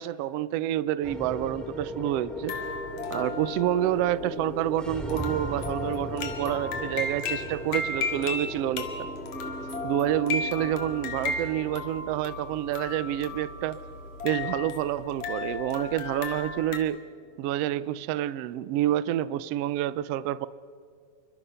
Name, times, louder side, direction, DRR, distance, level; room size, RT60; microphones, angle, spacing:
voice 1, 0.0-2.6 3.1-8.9 9.8-13.8 14.2-17.0 17.4-20.5, right 12 dB, 85° right, 17 dB, 1.4 m, -28 dB
sound 1, 1.0-19.4, equal, ahead, 2.3 m, -40 dB
sound 2, 2.5-16.8, left 4 dB, 65° left, 3.2 m, -35 dB
28.0 x 24.0 x 5.6 m, 2.2 s
omnidirectional pair, 3.6 m